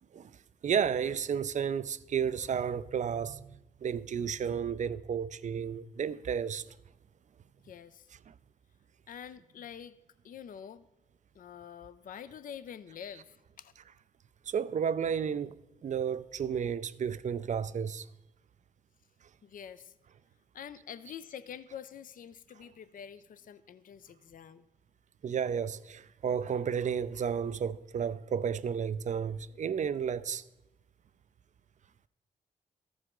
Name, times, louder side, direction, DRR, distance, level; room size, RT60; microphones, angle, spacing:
voice 1, 0.6-6.7 8.3-8.4 14.5-18.1 25.2-30.4, right 7 dB, 50° right, 0.4 m, -32 dB
voice 2, 7.6-8.1 9.1-10.0 10.2-10.9 11.3-13.7 19.4-19.9 20.5-24.7, left 8 dB, 60° left, 0.4 m, -46 dB
14.0 x 4.8 x 3.7 m
cardioid pair, 50°, 16 cm